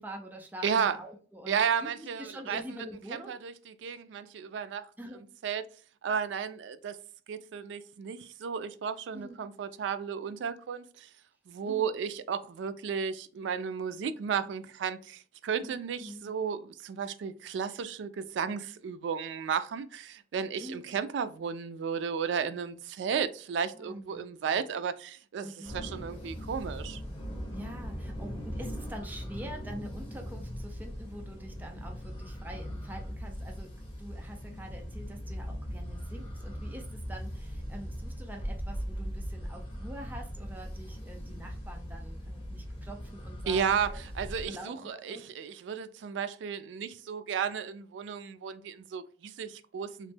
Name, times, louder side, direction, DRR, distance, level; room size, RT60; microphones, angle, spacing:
voice 1, 0.0-1.9 2.2-3.4 5.0-5.2 9.1-9.4 11.6-11.9 15.6-16.3 20.6-20.9 23.7-24.2 25.4-25.8 27.5-33.7 34.0-44.0 44.5-45.2, equal, 10° right, 0.4 m, -45 dB
voice 2, 0.6-1.0 1.5-4.9 5.4-5.6 6.0-7.0 7.3-11.1 11.5-27.0 43.5-50.1, right 7 dB, 85° right, 0.3 m, -33 dB
sound 1, 25.6-44.5, equal, 30° left, 1.0 m, -39 dB
3.0 x 2.1 x 3.2 m
head